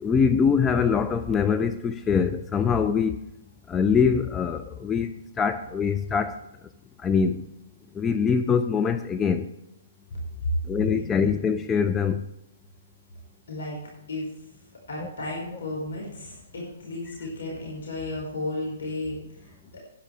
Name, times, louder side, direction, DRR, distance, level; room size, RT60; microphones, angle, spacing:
voice 1, 0.0-3.1 3.7-5.1 5.4-6.3 7.0-7.4 8.0-9.4 10.7-12.2 15.0-15.1, left 6 dB, 15° left, 8 dB, 0.5 m, -23 dB
voice 2, 10.1-10.5 11.0-11.4 13.5-13.8 14.1-14.3 14.9-19.8, left 2 dB, 70° left, -3 dB, 5.5 m, -34 dB
11.0 x 10.0 x 4.8 m, 0.85 s
hypercardioid pair, 130°, 0 cm